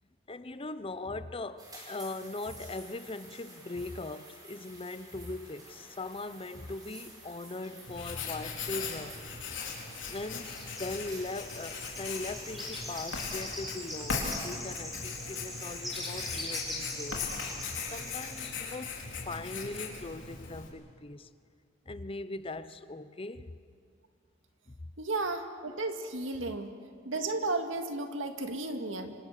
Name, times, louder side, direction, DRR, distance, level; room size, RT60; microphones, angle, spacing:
voice 1, 0.3-9.2 10.1-17.3 17.9-21.3 21.9-23.5 24.7-24.8, left 2 dB, 30° left, 0.8 m, -40 dB
sound 1, 1.6-13.5, right 2 dB, 20° right, 5.7 m, -52 dB
sound 2, 5.4-7.0 7.3-8.6 8.9-9.1 9.7-18.5, left 1 dB, ahead, 6.0 m, -42 dB
Writing, 7.8-20.7, left 5 dB, 75° left, 4.2 m, -39 dB
voice 2, 25.0-26.7 27.1-29.2, right 2 dB, 90° right, 2.0 m, -33 dB
26.5 x 26.0 x 6.7 m
head